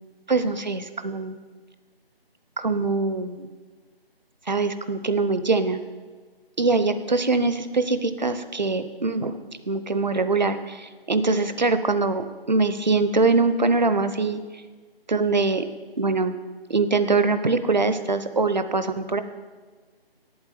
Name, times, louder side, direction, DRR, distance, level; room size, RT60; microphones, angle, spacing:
voice 1, 0.3-1.4 2.6-3.5 4.5-5.8 6.6-9.4 9.7-14.4 15.1-15.7 16.0-16.3 16.7-19.2, right 3 dB, 45° right, 11 dB, 0.8 m, -23 dB
8.8 x 7.5 x 8.7 m, 1.4 s
figure-of-eight pair, 160°, 30 cm